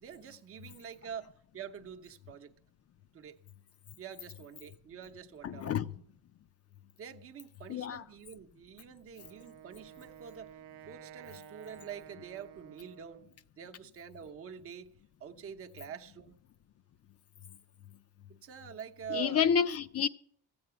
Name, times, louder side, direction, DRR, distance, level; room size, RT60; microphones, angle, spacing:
voice 1, 0.0-2.5 3.1-3.4 4.0-5.7 7.0-10.6 10.9-13.2 13.6-14.9 15.2-16.4 18.4-19.5, right 8 dB, 40° right, 0.8 m, -46 dB
voice 2, 5.4-5.9 7.7-8.0 19.1-20.1, left 7 dB, 45° left, 0.4 m, -29 dB
Wind instrument woodwind instrument, 9.1-13.4, right 10 dB, 90° right, 0.7 m, -52 dB
14.5 x 7.9 x 6.8 m
cardioid pair, 140°, 37 cm